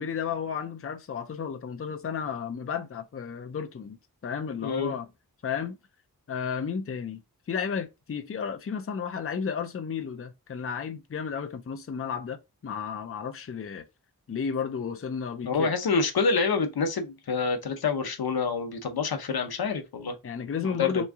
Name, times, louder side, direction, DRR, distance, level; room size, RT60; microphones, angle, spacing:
voice 1, 0.0-4.0 4.2-5.1 5.4-5.8 6.3-7.2 7.5-13.8 14.3-15.7 20.2-21.1, left 6 dB, 35° left, 0.5 m, -33 dB
voice 2, 4.6-4.9 15.4-20.2 20.6-20.9, left 4 dB, 75° left, 0.8 m, -27 dB
3.5 x 3.1 x 3.5 m
wide cardioid pair, 80°, 37 cm